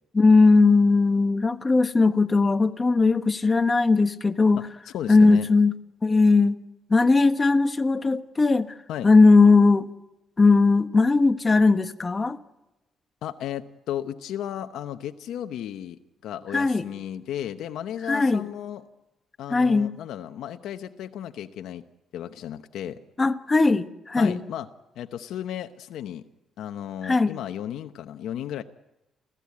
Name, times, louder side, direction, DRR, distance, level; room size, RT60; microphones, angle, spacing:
voice 1, 0.1-4.6 5.1-5.7 6.0-6.6 6.9-8.7 9.0-9.9 10.4-12.4 16.5-16.8 18.1-18.4 19.5-19.9 23.2-24.4 27.0-27.4, left 3 dB, 25° left, 1.2 m, -19 dB
voice 2, 4.5-5.5 8.9-9.1 13.2-18.8 19.4-21.8 22.1-23.0 24.2-24.7 24.9-26.2 26.6-28.6, left 10 dB, 80° left, 0.9 m, -34 dB
29.0 x 15.5 x 8.5 m
cardioid pair, 90°, 0 cm